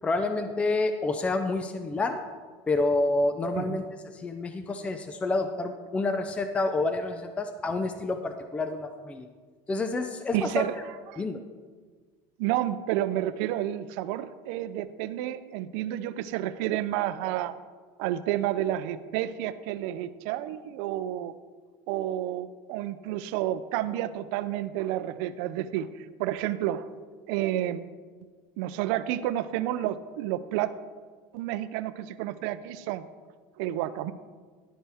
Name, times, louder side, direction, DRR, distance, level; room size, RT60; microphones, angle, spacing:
voice 1, 0.0-2.2 2.7-3.8 4.1-9.3 9.7-10.5 11.2-11.4, left 2 dB, 10° left, 7 dB, 0.4 m, -28 dB
voice 2, 10.3-10.7 11.1-11.2 12.4-17.5 18.0-21.3 21.9-26.9 27.3-27.9 28.6-30.7 31.3-33.0 33.6-34.1, right 13 dB, 70° right, 13 dB, 0.5 m, -30 dB
11.0 x 8.8 x 3.4 m, 1.5 s
cardioid pair, 155°, 10 cm